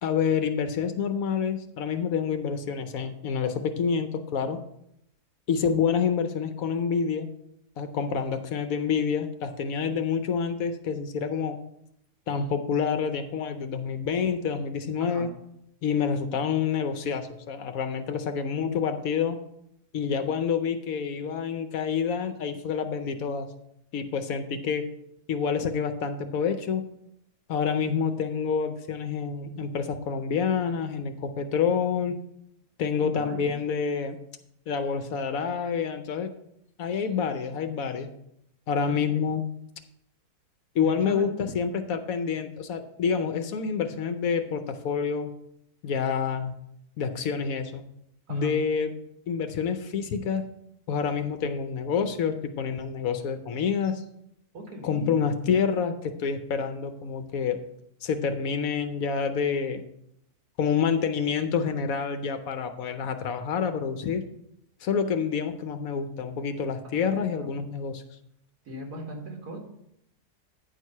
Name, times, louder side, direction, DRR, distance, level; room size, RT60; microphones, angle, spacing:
voice 1, 0.0-4.6 5.5-7.3 7.8-11.6 12.3-15.3 15.8-19.4 19.9-23.5 23.9-24.9 25.3-26.8 27.5-32.2 32.8-34.2 34.7-36.3 36.8-38.1 38.7-39.4 40.7-45.3 45.8-46.5 47.0-47.8 48.3-48.9 49.3-50.5 50.9-54.0 54.8-57.6 58.0-59.8 60.6-64.3 64.8-68.0, left 6 dB, 65° left, 8 dB, 1.0 m, -28 dB
voice 2, 32.9-33.5 38.9-39.2 40.8-41.3 48.3-48.5 54.5-55.2 66.8-67.5 68.7-69.6, right 1 dB, 75° right, 1 dB, 2.2 m, -39 dB
9.6 x 4.7 x 5.4 m, 0.77 s
omnidirectional pair, 1.7 m